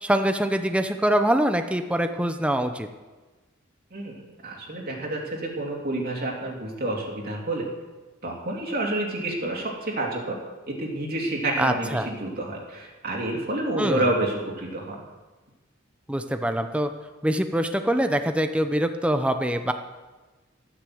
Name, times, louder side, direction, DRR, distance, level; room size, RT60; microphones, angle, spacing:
voice 1, 0.0-2.9 11.6-12.1 13.8-14.0 16.1-16.9 17.2-19.7, right 1 dB, 5° right, 7 dB, 0.7 m, -24 dB
voice 2, 4.4-7.7 8.2-10.3 10.7-15.0, right 1 dB, 45° right, -1 dB, 2.8 m, -29 dB
14.0 x 10.0 x 7.8 m, 1.2 s
head